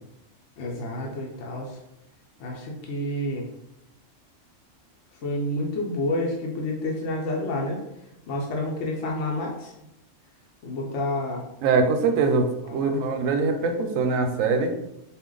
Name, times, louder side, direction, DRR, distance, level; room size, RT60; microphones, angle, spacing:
voice 1, 0.6-1.8 2.4-3.5 5.2-7.8 8.3-9.7 10.6-11.4 12.7-13.0, left 1 dB, 75° left, -1 dB, 1.0 m, -29 dB
voice 2, 11.6-14.7, right 4 dB, 90° right, 6 dB, 1.0 m, -23 dB
4.1 x 2.5 x 3.8 m, 0.87 s
omnidirectional pair, 1.3 m